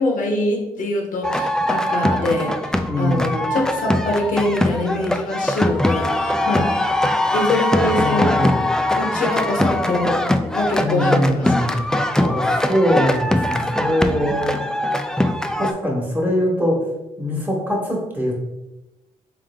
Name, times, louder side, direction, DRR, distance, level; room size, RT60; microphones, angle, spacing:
voice 1, 0.0-6.7 7.3-8.4 9.0-10.3 10.5-11.8, left 2 dB, 70° left, 0 dB, 0.8 m, -24 dB
sound 1, 1.2-15.7, left 1 dB, 5° left, 0.3 m, -21 dB
voice 2, 2.8-3.3 7.8-8.6 10.8-11.8 12.2-14.5 15.6-16.8 17.2-18.5, equal, 10° right, -2 dB, 1.4 m, -22 dB
3.4 x 3.2 x 3.5 m, 0.99 s
supercardioid pair, 60°, 14 cm